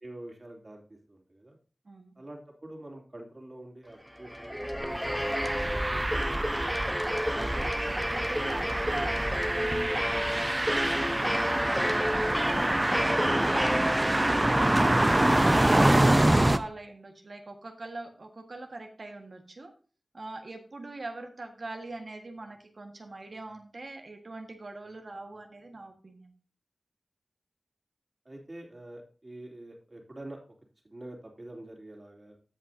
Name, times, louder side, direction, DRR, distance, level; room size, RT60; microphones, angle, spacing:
voice 1, 0.0-1.6 2.1-6.3 28.2-30.4 30.8-32.4, right 1 dB, 45° right, 0 dB, 3.1 m, -46 dB
sound 1, 4.1-14.5, equal, ahead, 1.0 m, -32 dB
sound 2, 4.9-16.6, right 1 dB, 25° right, 0.6 m, -26 dB
voice 2, 7.3-12.7 13.0-13.7 14.1-15.3 15.9-19.7 20.1-26.3, right 2 dB, 65° right, 4 dB, 1.6 m, -42 dB
16.0 x 5.6 x 2.8 m, 0.39 s
wide cardioid pair, 65°, 0 cm